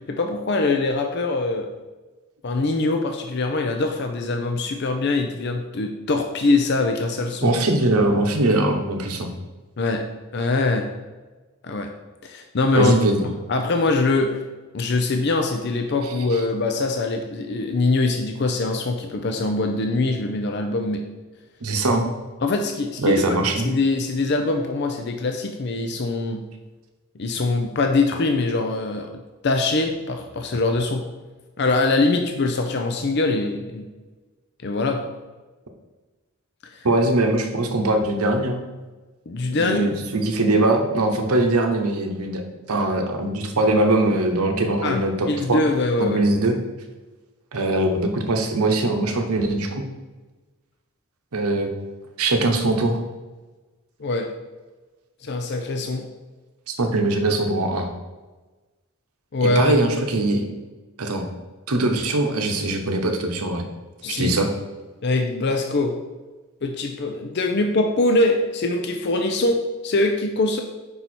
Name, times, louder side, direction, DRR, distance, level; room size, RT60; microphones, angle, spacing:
voice 1, 0.1-1.7 2.4-7.5 9.8-10.1 10.3-10.9 11.6-11.9 12.2-13.0 13.5-14.4 14.7-21.0 22.4-23.2 23.6-26.4 27.2-29.1 29.4-31.1 31.6-33.9 34.6-35.1 39.3-39.8 44.8-46.2 54.0-54.3 55.2-56.1 59.3-59.8 64.0-64.4 65.0-66.0 66.6-70.6, left 2 dB, 50° left, 4 dB, 0.5 m, -23 dB
voice 2, 7.4-9.3 12.7-13.3 21.6-22.1 23.0-23.7 36.8-38.6 39.6-42.4 42.7-45.6 46.0-46.6 47.5-49.8 51.3-51.7 52.2-53.0 56.7-57.9 59.4-60.5 61.0-61.3 61.7-63.7 64.1-64.5, right 2 dB, 90° right, 4 dB, 0.9 m, -21 dB
5.4 x 4.6 x 4.2 m, 1.2 s
head